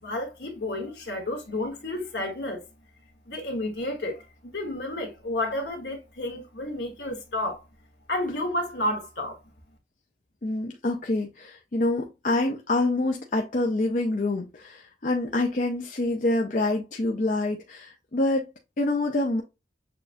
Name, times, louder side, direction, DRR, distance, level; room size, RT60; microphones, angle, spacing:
voice 1, 0.0-2.6 3.3-7.6 8.1-9.4, left 1 dB, 70° left, 1.4 m, -31 dB
voice 2, 10.4-18.5 18.8-19.4, left 2 dB, 45° left, 0.5 m, -26 dB
6.8 x 2.4 x 2.6 m
head